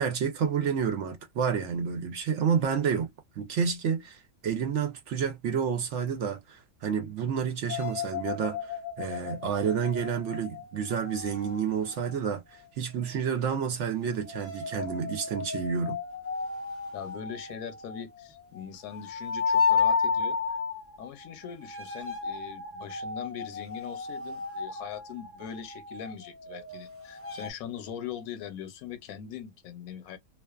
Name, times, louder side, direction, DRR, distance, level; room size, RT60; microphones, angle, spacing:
voice 1, 0.0-3.1 3.4-16.0, right 7 dB, 65° right, 0.9 m, -30 dB
sound 1, 7.7-12.3 14.1-27.5, left 5 dB, 20° left, 0.4 m, -33 dB
voice 2, 16.9-20.4 21.0-30.2, left 8 dB, 80° left, 1.0 m, -41 dB
2.4 x 2.3 x 2.3 m
omnidirectional pair, 1.5 m